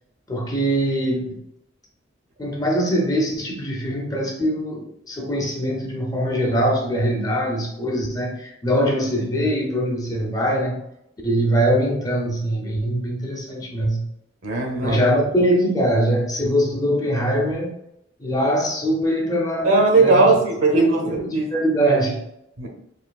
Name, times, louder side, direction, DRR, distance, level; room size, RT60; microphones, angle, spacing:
voice 1, 0.3-1.4 2.4-10.8 11.2-14.1 14.8-17.7 18.2-20.3 20.7-22.2, equal, 15° left, 0 dB, 0.5 m, -22 dB
voice 2, 14.4-15.0 19.6-21.5 22.6-22.7, right 3 dB, 75° right, 2 dB, 0.9 m, -18 dB
4.3 x 2.8 x 2.3 m, 0.81 s
head